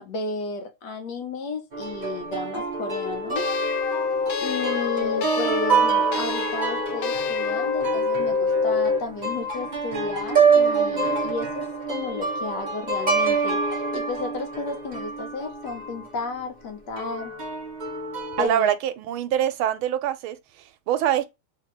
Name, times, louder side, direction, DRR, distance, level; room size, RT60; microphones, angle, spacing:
voice 1, 0.0-3.4 4.4-17.3 18.4-18.7, left 3 dB, 65° left, 1.3 m, -33 dB
sound 1, 1.7-16.1 17.0-18.5, right 4 dB, 55° right, 0.4 m, -26 dB
sound 2, 3.4-9.1, left 5 dB, 80° left, 0.8 m, -26 dB
voice 2, 18.4-21.3, right 11 dB, 90° right, 1.4 m, -25 dB
3.3 x 2.9 x 3.0 m
omnidirectional pair, 2.2 m